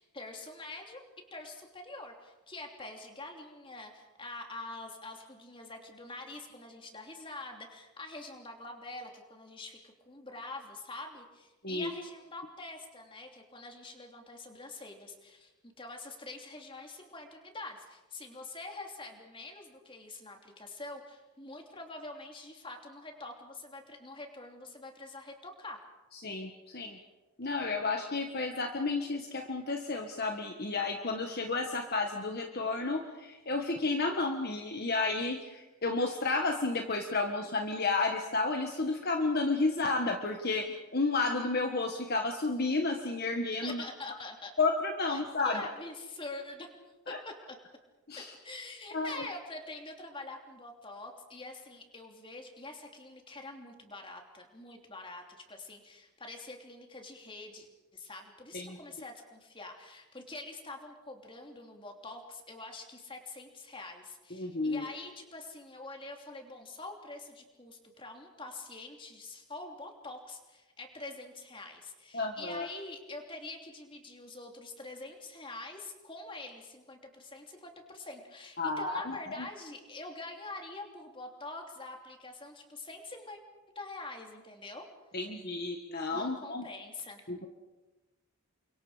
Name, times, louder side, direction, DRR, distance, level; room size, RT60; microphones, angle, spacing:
voice 1, 0.0-25.8 43.6-44.5 45.1-46.7 47.1-47.6 48.1-83.4 83.7-84.9 86.1-87.2, left 2 dB, 25° left, 2 dB, 3.1 m, -45 dB
voice 2, 26.1-27.0 27.4-43.8 44.6-45.6 47.1-47.2 48.1-48.3 48.9-49.3 58.5-58.8 64.3-64.8 72.1-72.7 78.6-79.5 85.1-86.6 87.3-87.5, left 3 dB, 45° left, 4 dB, 1.5 m, -32 dB
30.0 x 25.0 x 5.1 m, 1.1 s
head